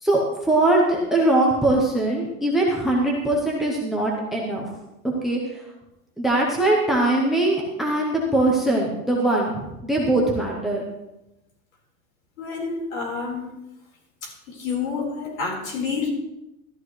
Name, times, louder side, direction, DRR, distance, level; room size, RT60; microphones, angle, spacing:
voice 1, 0.0-4.7 5.0-5.6 6.2-10.9, right 2 dB, ahead, -1 dB, 0.7 m, -21 dB
voice 2, 12.4-13.4 14.5-16.1, left 5 dB, 65° left, 0 dB, 4.3 m, -28 dB
13.0 x 13.0 x 3.2 m, 0.92 s
supercardioid pair, 175°, 43 cm